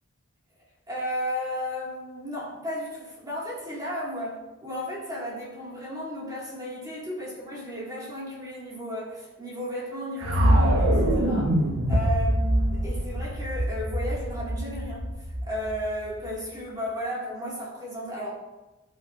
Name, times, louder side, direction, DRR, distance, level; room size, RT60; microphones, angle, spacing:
voice 1, 0.9-11.6 11.9-18.4, equal, 20° right, -6 dB, 2.4 m, -34 dB
sound 1, 10.2-16.3, equal, 75° right, 1.4 m, -24 dB
17.0 x 5.9 x 2.7 m, 1.1 s
head